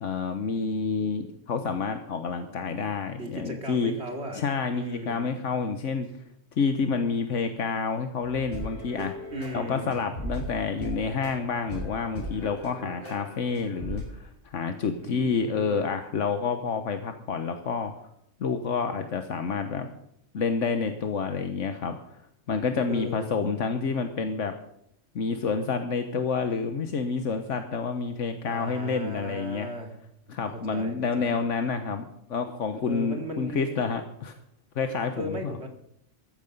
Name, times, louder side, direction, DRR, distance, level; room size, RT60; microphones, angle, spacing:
voice 1, 0.0-3.9 4.3-6.1 6.6-9.1 9.5-17.9 18.4-19.9 20.3-22.0 22.5-24.6 25.1-29.7 30.3-34.4 34.7-35.4, left 5 dB, 80° left, 7 dB, 1.4 m, -29 dB
voice 2, 3.2-4.4 4.7-5.4 9.3-10.0 15.0-15.8 22.9-23.5 28.5-29.9 30.5-31.4 32.9-33.8 35.2-35.7, right 1 dB, 60° right, 3 dB, 2.8 m, -37 dB
sound 1, 8.2-14.2, equal, 45° left, 8.3 m, -38 dB
14.0 x 14.0 x 5.4 m, 0.73 s
omnidirectional pair, 1.2 m